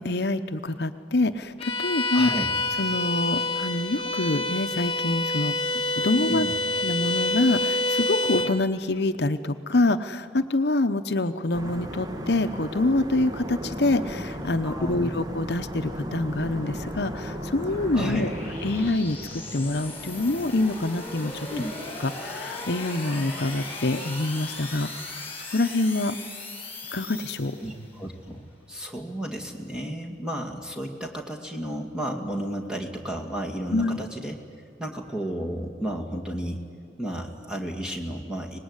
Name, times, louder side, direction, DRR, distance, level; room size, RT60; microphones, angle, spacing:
voice 1, 0.0-2.3 2.8-5.5 6.0-6.5 6.8-18.3 18.6-21.5 22.0-24.9 25.5-26.2 26.9-27.5 33.7-34.0, left 2 dB, 60° left, 9 dB, 0.9 m, -26 dB
Bowed string instrument, 1.6-8.6, left 2 dB, 30° left, 1.1 m, -27 dB
voice 2, 2.1-2.5 6.2-6.6 14.6-15.2 17.9-18.3 21.5-21.7 27.6-34.4 34.8-36.6 37.0-38.6, right 1 dB, 5° right, 0 dB, 2.3 m, -33 dB
sound 1, 11.5-18.9, equal, 20° right, 1.1 m, -35 dB
sound 2, 14.1-28.0, left 2 dB, 10° left, 5.9 m, -39 dB
24.5 x 20.0 x 9.7 m, 2.4 s
head